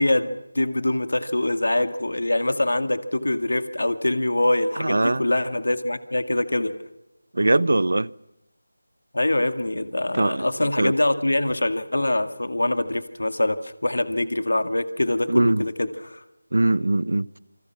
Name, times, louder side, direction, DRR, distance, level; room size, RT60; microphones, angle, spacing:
voice 1, 0.0-6.7 9.1-16.2, left 1 dB, 80° left, 2.1 m, -24 dB
voice 2, 4.8-5.2 7.3-8.1 10.1-10.5 10.8-10.9 15.3-15.6 16.5-17.3, right 2 dB, 70° right, 0.8 m, -21 dB
28.0 x 26.5 x 6.0 m
figure-of-eight pair, 170°, 0 cm